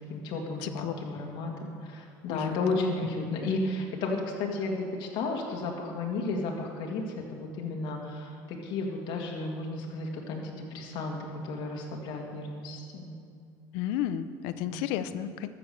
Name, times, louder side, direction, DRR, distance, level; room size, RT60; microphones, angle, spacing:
voice 1, 0.1-11.2 11.5-13.2 14.6-14.9, left 3 dB, 65° left, -1 dB, 1.8 m, -33 dB
voice 2, 0.6-0.9 2.3-2.8 13.7-15.5, left 11 dB, 85° left, 12 dB, 0.6 m, -32 dB
13.5 x 6.9 x 6.7 m, 2.3 s
cardioid pair, 125°, 9 cm